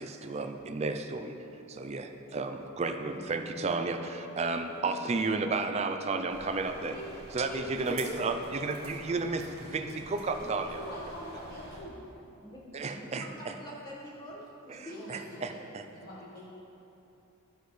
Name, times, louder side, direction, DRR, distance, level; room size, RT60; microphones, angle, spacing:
voice 1, 0.0-1.3 1.7-7.0 7.3-10.8 12.7-13.5 14.7-14.8 15.1-15.8, right 3 dB, 30° right, 6 dB, 0.4 m, -32 dB
sound 1, 6.3-11.8, right 2 dB, 45° right, 1.4 m, -48 dB
voice 2, 6.8-7.1 7.3-8.2 10.4-12.0 14.9-15.6 15.9-16.5, left 1 dB, 45° left, -5 dB, 0.9 m, -43 dB
voice 3, 13.3-15.0, equal, 20° left, -4 dB, 1.4 m, -45 dB
11.5 x 6.4 x 3.2 m, 3.0 s
head